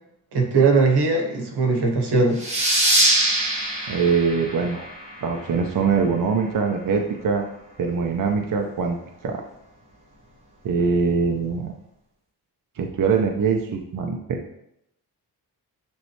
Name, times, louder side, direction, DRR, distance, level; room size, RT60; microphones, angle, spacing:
voice 1, 0.3-2.5, right 4 dB, 85° right, 3 dB, 1.2 m, -20 dB
sound 1, 2.4-5.6, right 1 dB, 15° right, 1.4 m, -23 dB
voice 2, 3.9-4.8 5.2-7.5 7.8-9.0 9.2-9.4 10.6-11.7 12.8-14.4, right 5 dB, 55° right, 2 dB, 0.7 m, -23 dB
9.3 x 3.2 x 3.1 m, 0.77 s
wide cardioid pair, 140°, 39 cm